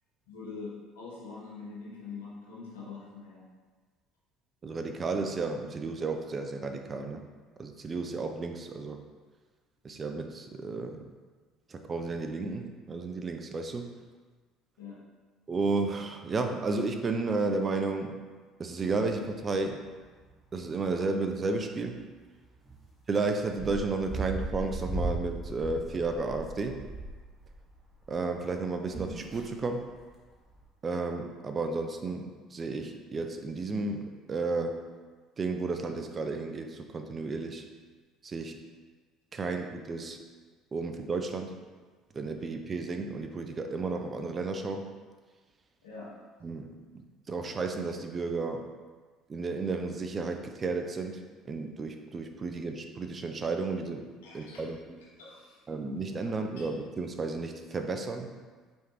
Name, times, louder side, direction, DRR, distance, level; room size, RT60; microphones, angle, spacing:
voice 1, 0.3-3.4 14.8-15.0 45.8-46.1 54.2-54.6 55.2-55.7, left 4 dB, 80° left, -5 dB, 1.1 m, -44 dB
voice 2, 4.6-7.2 7.6-9.0 9.8-11.1 11.7-13.9 15.5-18.2 18.6-19.8 20.5-22.0 23.1-26.8 28.1-29.8 30.8-34.8 35.4-37.7 38.2-38.5 39.3-40.2 40.7-41.5 42.2-44.9 46.4-46.7 46.9-48.7 49.3-51.2 51.5-54.1 54.3-55.0 55.7-58.3, right 3 dB, 35° right, 5 dB, 0.4 m, -32 dB
sound 1, 18.9-19.5 19.8-19.9 20.1-20.7 21.3-21.5 21.8-21.9 22.7-22.8 23.4-28.2 28.5-30.2 30.5-30.6, right 2 dB, ahead, 1.2 m, -37 dB
4.7 x 3.2 x 2.9 m, 1.4 s
hypercardioid pair, 60°, 0 cm